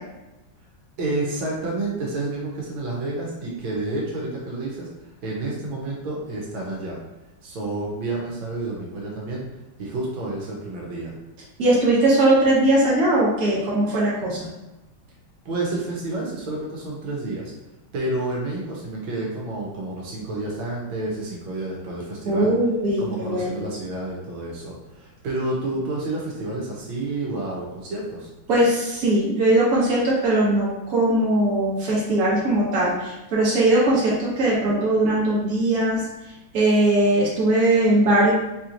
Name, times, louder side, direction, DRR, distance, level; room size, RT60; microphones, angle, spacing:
voice 1, 1.0-4.9 5.2-7.0 7.4-9.4 9.8-11.1 15.4-17.5 17.9-22.5 23.0-28.3, right 2 dB, 80° right, -3 dB, 1.7 m, -29 dB
voice 2, 11.6-14.5 22.2-23.6 28.5-36.1 36.5-38.3, right 1 dB, 50° right, -6 dB, 1.5 m, -20 dB
4.6 x 2.9 x 2.5 m, 0.99 s
omnidirectional pair, 2.1 m